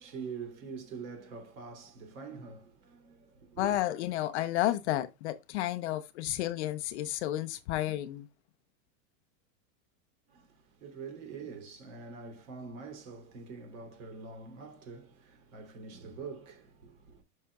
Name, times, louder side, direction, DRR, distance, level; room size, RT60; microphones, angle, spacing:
voice 1, 0.0-3.7 10.3-17.2, right 5 dB, 50° right, 3.3 m, -45 dB
voice 2, 3.6-8.3, left 14 dB, 45° left, 0.6 m, -31 dB
10.0 x 6.5 x 2.3 m
supercardioid pair, 160°, 50 cm